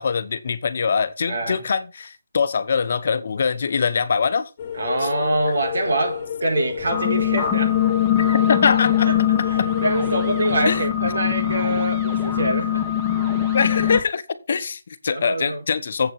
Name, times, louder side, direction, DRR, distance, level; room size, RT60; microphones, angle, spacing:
voice 1, 0.0-4.5 5.0-5.1 8.3-9.3 9.6-9.7 10.6-10.8 13.5-16.1, left 5 dB, 50° left, 1.0 m, -23 dB
voice 2, 1.3-1.6 4.8-7.8 9.5-12.8 15.1-15.6, right 2 dB, 70° right, 4.6 m, -25 dB
sound 1, 4.6-10.6, left 8 dB, 25° left, 1.8 m, -31 dB
sound 2, 6.8-14.0, left 10 dB, 5° left, 1.8 m, -22 dB
8.0 x 5.8 x 5.8 m
hypercardioid pair, 170°, 0 cm